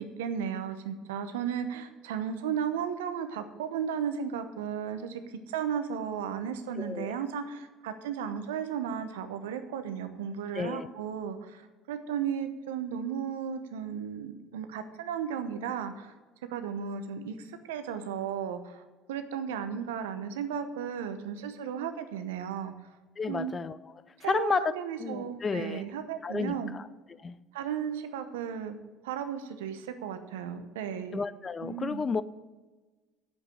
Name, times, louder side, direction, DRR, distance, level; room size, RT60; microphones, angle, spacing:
voice 1, 0.0-5.2 5.5-16.1 16.5-18.8 19.1-22.7 23.3-23.5 24.2-26.7 27.5-28.8 29.0-31.2 31.6-32.1, right 8 dB, 80° right, 0.9 m, -35 dB
voice 2, 6.8-7.2 10.5-10.9 23.2-23.8 24.2-24.7 25.0-25.8 26.2-26.8 27.2-27.4 31.1-32.2, left 5 dB, 30° left, 0.5 m, -31 dB
8.0 x 7.5 x 8.6 m
hypercardioid pair, 70°, 0 cm